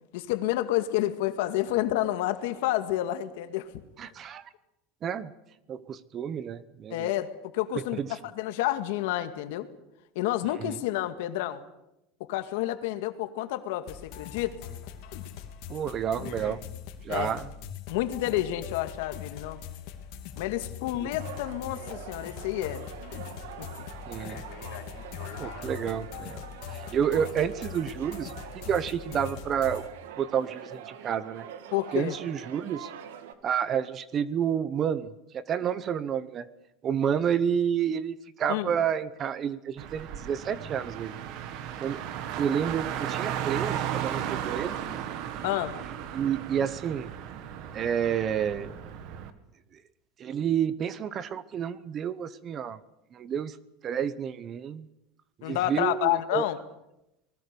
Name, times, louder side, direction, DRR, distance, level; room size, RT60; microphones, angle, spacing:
voice 1, 0.1-3.7 6.9-7.3 7.5-9.7 10.2-11.6 12.3-14.6 17.1-17.3 17.9-19.6 20.4-22.9 23.6-23.7 31.7-32.2 38.5-38.8 45.4-45.8 55.4-56.6, left 14 dB, 70° left, 9 dB, 2.1 m, -29 dB
voice 2, 4.0-4.5 5.0-5.3 5.7-7.1 7.7-8.1 10.6-10.8 15.7-16.6 17.0-17.5 21.0-21.1 24.1-24.4 25.4-26.4 26.7-28.3 28.7-29.8 30.2-31.4 31.9-32.9 33.4-36.5 36.8-41.1 41.8-42.0 42.4-44.8 46.1-47.1 47.7-48.7 50.2-52.8 53.1-53.6 53.8-54.9 55.4-56.5, right 8 dB, 25° right, 16 dB, 0.9 m, -30 dB
sound 1, 13.9-29.9, left 9 dB, 50° left, 3.1 m, -41 dB
sound 2, 21.2-33.3, right 8 dB, 90° right, 2.2 m, -44 dB
Car, 39.8-49.3, right 10 dB, 45° right, 1.9 m, -35 dB
26.5 x 20.0 x 7.0 m, 0.89 s
supercardioid pair, 170°, 0 cm